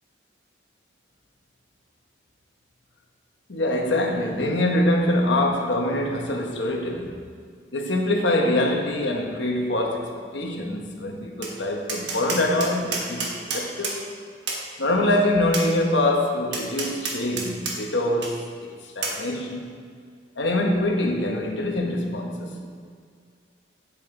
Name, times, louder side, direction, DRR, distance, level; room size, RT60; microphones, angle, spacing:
voice 1, 3.5-7.2 7.7-14.0 14.8-18.7 19.0-19.7 20.4-22.7, left 1 dB, 75° left, 2 dB, 1.1 m, -24 dB
Tap, 11.4-11.5 11.9-14.0 14.5-14.6 15.5-15.7 16.5-17.8 18.2-18.3 19.0-19.2, right 4 dB, 70° right, 1.3 m, -29 dB
7.7 x 6.9 x 4.0 m, 2.1 s
head